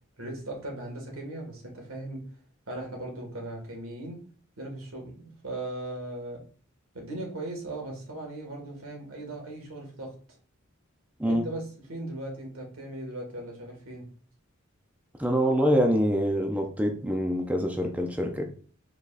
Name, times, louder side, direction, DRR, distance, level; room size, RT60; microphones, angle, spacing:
voice 1, 0.2-2.3 2.7-4.2 4.6-6.4 6.9-10.2 11.2-14.1, right 1 dB, 85° right, 0 dB, 1.9 m, -38 dB
voice 2, 15.2-18.5, equal, 5° right, 3 dB, 0.5 m, -25 dB
5.1 x 4.0 x 2.5 m, 0.42 s
head